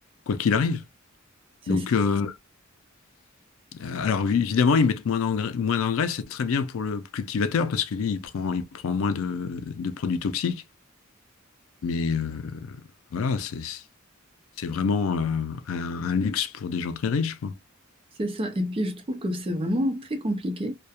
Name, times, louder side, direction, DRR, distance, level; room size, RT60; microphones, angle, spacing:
voice 1, 0.3-0.8 1.7-2.4 3.7-10.6 11.8-12.8 13.1-13.8 14.6-17.6, left 5 dB, 85° left, 0.4 m, -26 dB
voice 2, 18.2-20.7, equal, 25° right, 0.5 m, -28 dB
2.3 x 2.1 x 2.8 m
head